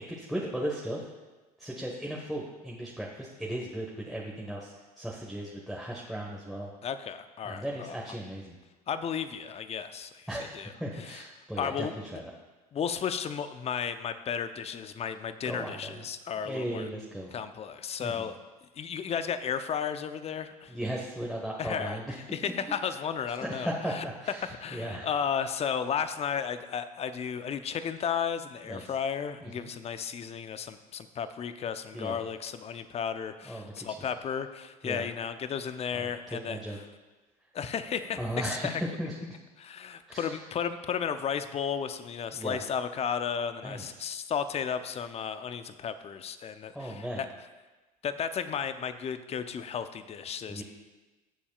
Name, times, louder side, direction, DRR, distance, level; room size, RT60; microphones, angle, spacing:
voice 1, 0.1-1.0 1.6-6.7 7.4-8.5 10.3-11.9 12.1-12.2 15.4-16.0 16.4-17.3 18.0-18.3 20.7-22.1 23.4-25.1 28.7-28.8 29.4-29.7 31.9-32.2 33.5-33.9 34.8-35.0 35.9-36.8 38.2-39.4 40.1-40.4 42.3-42.6 43.6-44.1 46.7-47.2 50.5-50.6, right 1 dB, ahead, -3 dB, 1.5 m, -36 dB
voice 2, 6.8-7.9 8.9-10.3 10.5-10.7 11.0-11.2 11.6-12.2 12.7-16.9 17.3-18.4 18.8-20.7 21.6-22.0 22.3-24.0 24.4-36.8 37.5-38.8 39.6-47.3 48.0-50.6, left 7 dB, 30° left, 11 dB, 0.7 m, -34 dB
18.0 x 7.0 x 2.5 m, 1.2 s
hypercardioid pair, 70°, 20 cm